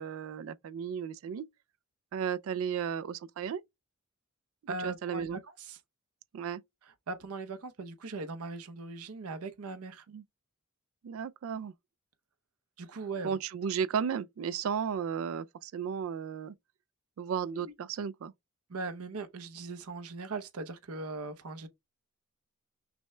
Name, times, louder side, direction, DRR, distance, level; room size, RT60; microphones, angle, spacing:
voice 1, 0.0-1.5 2.1-3.6 4.8-5.4 6.3-6.6 10.1-10.2 11.0-11.7 13.2-16.5 17.2-18.3, right 7 dB, 65° right, 0.3 m, -34 dB
voice 2, 4.7-5.8 7.1-10.0 12.8-13.4 17.5-17.7 18.7-21.7, right 3 dB, 85° right, 0.7 m, -39 dB
6.1 x 2.1 x 3.1 m
head